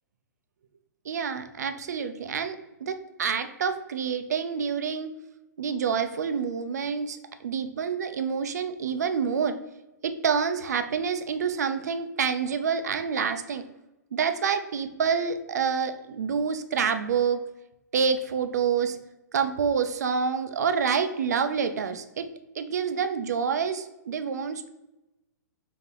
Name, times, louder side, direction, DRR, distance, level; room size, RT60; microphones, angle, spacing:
voice 1, 1.1-5.1 5.6-9.6 10.0-13.6 14.1-17.4 17.9-19.0 19.3-22.2 22.6-24.7, right 6 dB, 65° right, 9 dB, 0.5 m, -27 dB
3.9 x 2.8 x 3.8 m, 0.96 s
figure-of-eight pair, 110°, 10 cm